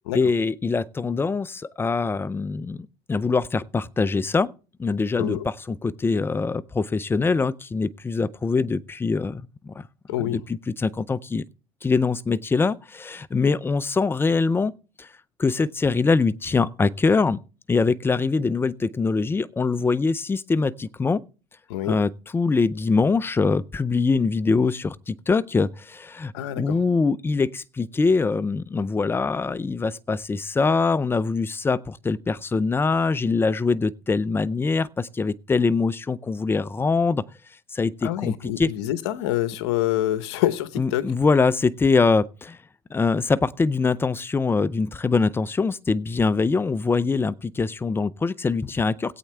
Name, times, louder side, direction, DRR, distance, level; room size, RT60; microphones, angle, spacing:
voice 1, 0.1-2.8 3.1-4.5 4.8-9.7 10.2-11.4 11.8-14.7 15.0-15.1 15.4-17.4 17.7-21.2 21.9-37.2 37.7-38.7 40.8-42.6 42.9-49.2, left 4 dB, 15° left, 0.5 m, -23 dB
voice 2, 10.1-10.4 21.7-22.0 26.3-26.8 38.0-41.1, left 13 dB, 90° left, 0.9 m, -26 dB
18.5 x 8.4 x 3.4 m
supercardioid pair, 100°, 14 cm